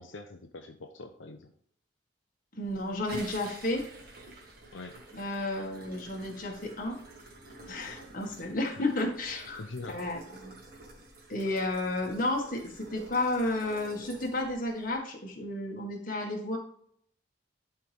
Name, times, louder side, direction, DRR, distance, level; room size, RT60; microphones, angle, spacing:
voice 1, 0.0-1.5 4.7-5.0 9.6-10.0, left 3 dB, 85° left, 4 dB, 0.8 m, -43 dB
voice 2, 2.5-3.9 5.1-7.0 7.7-9.6 9.9-10.5 11.3-16.6, left 2 dB, 45° left, 1 dB, 1.8 m, -32 dB
sound 1, 2.6-15.0, right 1 dB, 50° right, 1.9 m, -49 dB
11.0 x 4.5 x 3.6 m, 0.63 s
head